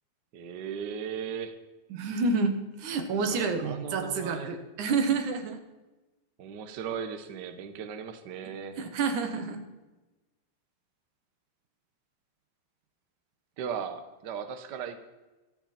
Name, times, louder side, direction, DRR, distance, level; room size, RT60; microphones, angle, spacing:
voice 1, 0.3-1.6 3.3-4.5 6.4-8.8 13.6-15.0, right 7 dB, 55° right, 8 dB, 1.2 m, -37 dB
voice 2, 1.9-5.6 8.8-9.6, right 4 dB, 80° right, 6 dB, 2.9 m, -29 dB
25.5 x 9.0 x 4.3 m, 1.1 s
omnidirectional pair, 3.4 m